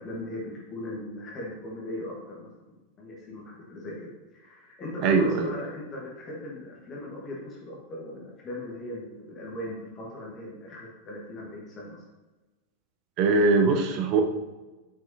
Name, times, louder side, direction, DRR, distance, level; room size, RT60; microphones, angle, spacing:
voice 1, 0.0-12.0, left 1 dB, 25° left, -3 dB, 1.4 m, -39 dB
voice 2, 5.0-5.5 13.2-14.2, right 4 dB, 40° right, 5 dB, 0.7 m, -21 dB
6.3 x 5.5 x 2.8 m, 1.2 s
figure-of-eight pair, 90°, 0 cm